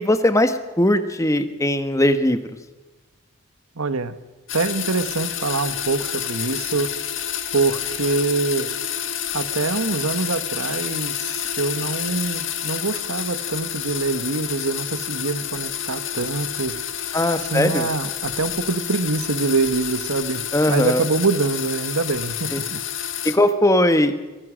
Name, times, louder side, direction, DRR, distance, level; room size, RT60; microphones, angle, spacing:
voice 1, 0.0-2.4 17.1-17.9 20.5-21.1 22.5-22.6 23.2-24.1, left 1 dB, 15° left, 10 dB, 1.2 m, -19 dB
voice 2, 3.8-4.1 4.5-6.9 7.5-8.7 9.3-16.7 17.5-22.8, right 3 dB, 85° right, 12 dB, 1.3 m, -24 dB
sound 1, 4.5-23.4, left 9 dB, 60° left, 1.9 m, -29 dB
24.0 x 18.0 x 6.4 m, 1.2 s
head